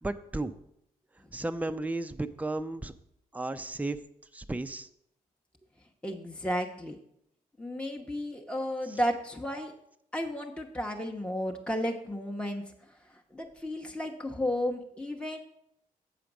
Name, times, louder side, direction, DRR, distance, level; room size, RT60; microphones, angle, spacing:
voice 1, 0.0-0.5 1.3-2.9 3.3-4.0 4.3-4.9 8.9-9.0, right 2 dB, 10° right, 9 dB, 0.5 m, -34 dB
voice 2, 6.0-7.0 7.6-9.7 10.1-12.6 13.3-15.4, equal, 5° left, 2 dB, 0.9 m, -33 dB
7.7 x 5.1 x 6.0 m, 0.77 s
supercardioid pair, 55°, 15 cm